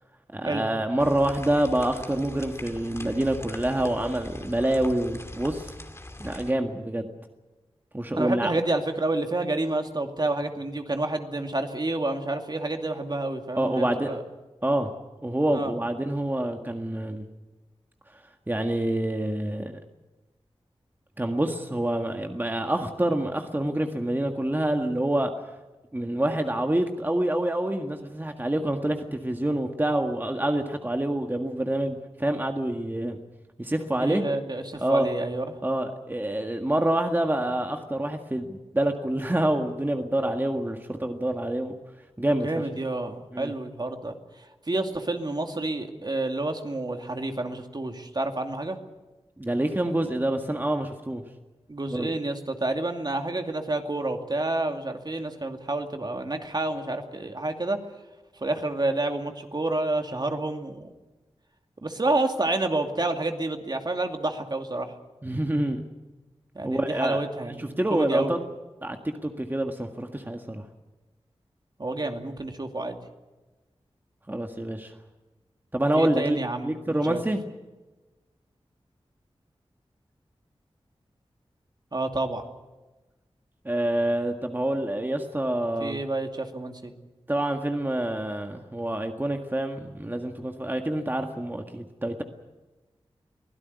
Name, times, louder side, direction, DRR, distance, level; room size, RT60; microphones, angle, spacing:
voice 1, 0.3-5.7 6.2-7.1 7.9-8.6 13.6-14.1 14.6-14.9 15.2-17.3 18.1-19.7 21.2-25.3 25.9-33.2 33.6-34.2 34.8-35.1 35.6-41.7 42.2-42.6 43.3-43.5 49.4-51.2 51.9-52.1 65.2-65.8 66.6-67.2 67.6-68.4 68.8-70.6 74.3-74.9 75.7-76.4 76.6-77.4 83.7-86.0 87.3-92.2, right 1 dB, 20° right, 4 dB, 1.8 m, -27 dB
sound 1, 1.0-6.5, left 1 dB, 25° left, 2.3 m, -41 dB
voice 2, 8.2-14.2 15.5-15.7 34.0-35.6 42.4-48.8 51.7-57.8 58.4-60.9 61.8-64.9 66.5-68.4 71.8-73.0 75.9-76.8 77.1-77.2 81.9-82.5 85.8-86.9, right 2 dB, 45° right, 4 dB, 2.4 m, -29 dB
24.5 x 16.0 x 9.5 m, 1.2 s
wide cardioid pair, 70°, 10 cm